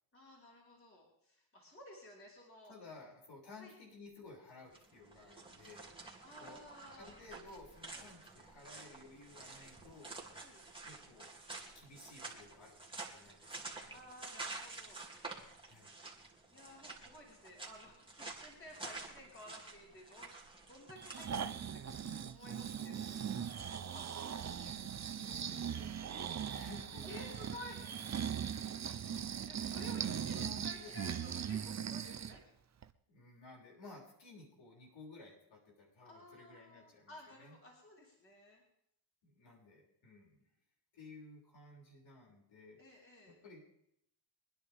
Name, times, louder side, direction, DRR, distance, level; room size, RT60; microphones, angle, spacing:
voice 1, 0.1-2.7 3.6-3.8 6.2-7.1 7.9-8.1 10.4-10.6 13.9-15.0 16.5-21.8 22.2-23.2 23.9-24.4 27.0-27.8 28.9-32.5 36.0-38.6 42.8-43.4, left 1 dB, 25° left, -4 dB, 5.2 m, -54 dB
voice 2, 2.6-5.9 6.4-6.6 7.0-10.1 10.8-11.3 11.7-14.0 15.6-16.0 22.9-23.7 25.1-27.4 27.8-27.9 29.2-31.7 33.1-37.6 39.2-40.4 40.9-43.6, left 3 dB, 60° left, -2 dB, 6.6 m, -56 dB
sound 1, 4.6-22.3, right 3 dB, 10° right, 2.9 m, -50 dB
Breathing, 21.0-32.4 32.8-32.9, right 8 dB, 35° right, 0.8 m, -40 dB
24.5 x 10.5 x 3.6 m, 0.72 s
cardioid pair, 100°, 50 cm